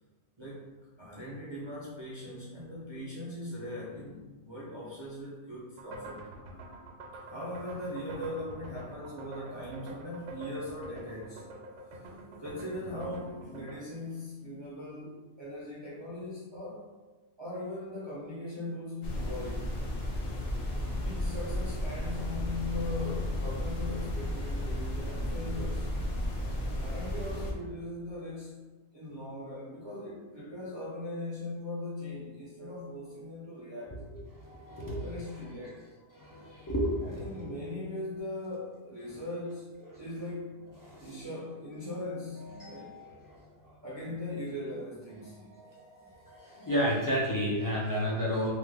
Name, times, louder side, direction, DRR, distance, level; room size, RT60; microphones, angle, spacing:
voice 1, 0.4-6.3 7.3-11.4 11.9-12.0 12.4-16.9 17.4-19.6 21.0-26.0 26.8-28.7 28.9-34.0 35.0-35.9 37.0-40.7 41.0-42.9 43.8-45.5 46.6-46.7, left 1 dB, 40° right, -7 dB, 0.4 m, -40 dB
sound 1, 5.8-13.8, right 1 dB, 80° right, 0.9 m, -46 dB
sound 2, 19.0-27.5, left 1 dB, 60° left, 0.8 m, -33 dB
voice 2, 34.3-35.4 36.1-37.5 39.1-39.2 39.9-40.0 40.8-41.2 42.4-43.7 45.5-48.5, equal, 35° left, -7 dB, 0.3 m, -33 dB
3.0 x 2.0 x 3.4 m, 1.3 s
omnidirectional pair, 1.2 m